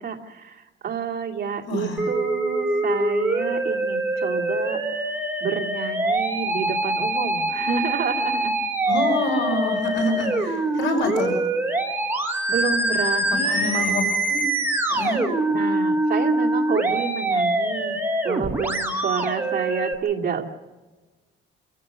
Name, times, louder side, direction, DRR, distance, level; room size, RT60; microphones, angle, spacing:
voice 1, 0.0-8.5 12.5-13.9 15.5-20.5, right 6 dB, 45° right, 0 dB, 2.4 m, -29 dB
voice 2, 1.7-2.0 8.9-11.4 13.3-14.0 14.3-14.4 14.9-15.2, left 1 dB, 70° left, 2 dB, 5.4 m, -26 dB
Musical instrument, 2.0-19.9, right 1 dB, 10° right, 1.5 m, -24 dB
27.5 x 15.0 x 6.5 m, 1.3 s
cardioid pair, 175°, 21 cm